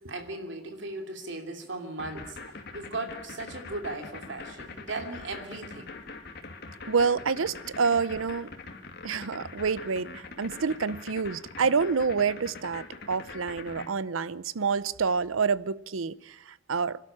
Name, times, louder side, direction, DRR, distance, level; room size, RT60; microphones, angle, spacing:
voice 1, 0.0-2.4 2.7-6.0, right 2 dB, 60° right, 2.9 m, -37 dB
sound 1, 2.0-13.9, left 3 dB, 55° left, 2.4 m, -43 dB
voice 2, 6.9-8.5 9.0-16.4 16.7-17.0, right 5 dB, 85° right, 0.7 m, -28 dB
25.5 x 12.5 x 8.7 m
head